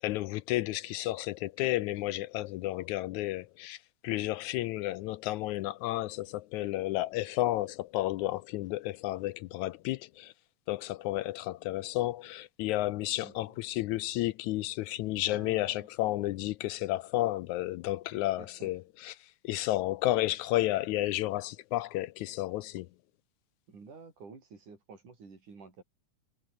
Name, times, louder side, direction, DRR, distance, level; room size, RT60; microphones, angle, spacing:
voice 1, 0.0-10.3 10.7-22.9, left 16 dB, 80° left, 1.8 m, -32 dB
voice 2, 13.2-13.5 15.2-15.9 18.1-18.7 23.7-25.8, right 4 dB, 70° right, 7.1 m, -51 dB
omnidirectional pair, 3.7 m